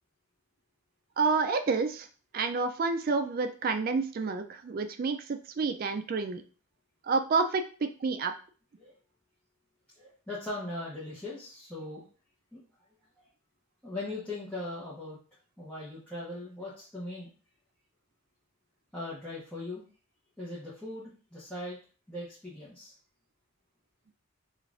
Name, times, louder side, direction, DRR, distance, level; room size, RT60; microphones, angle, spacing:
voice 1, 1.2-2.1 2.3-6.4 7.1-8.3, right 4 dB, 40° right, 7 dB, 0.3 m, -29 dB
voice 2, 10.0-12.0 12.5-12.6 13.8-15.2 15.6-17.3 18.9-19.8 20.4-21.8 22.1-22.9, left 2 dB, 5° left, -9 dB, 0.8 m, -39 dB
5.0 x 2.4 x 2.4 m, 0.38 s
head